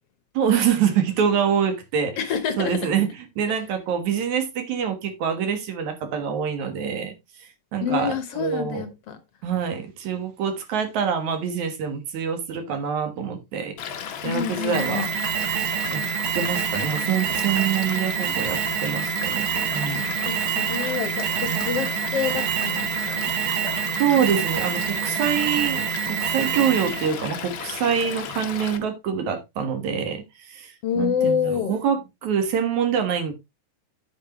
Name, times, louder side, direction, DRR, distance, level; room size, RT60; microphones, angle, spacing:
voice 1, 0.3-2.2 2.6-3.1 3.4-7.1 7.7-8.8 9.4-13.7 14.2-15.1 15.9-16.0 16.4-20.1 21.4-21.8 24.0-33.3, right 7 dB, 65° right, 2.7 m, -25 dB
voice 2, 2.2-2.9 3.5-3.6 7.8-9.2 14.2-15.1 20.2-23.3 30.8-31.7, left 7 dB, 65° left, 1.6 m, -27 dB
Stream / Liquid, 13.8-28.8, left 8 dB, 85° left, 1.1 m, -34 dB
Alarm, 14.7-27.1, right 11 dB, 85° right, 2.7 m, -27 dB
9.0 x 8.6 x 3.0 m
omnidirectional pair, 3.9 m